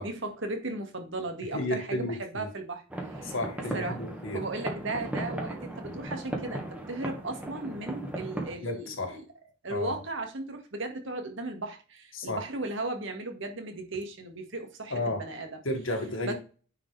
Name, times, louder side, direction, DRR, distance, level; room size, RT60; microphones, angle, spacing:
voice 1, 0.0-3.3 3.7-4.0 4.3-9.3 9.6-15.6 16.2-16.3, right 2 dB, 65° right, 4 dB, 1.9 m, -36 dB
voice 2, 1.5-2.5 3.2-4.4 8.6-9.2 9.7-9.9 12.1-12.4 14.9-15.2 15.6-16.3, left 1 dB, 75° left, 3 dB, 2.2 m, -32 dB
sound 1, 2.9-8.5, right 1 dB, 10° right, 1.7 m, -37 dB
9.8 x 5.0 x 3.4 m, 0.37 s
head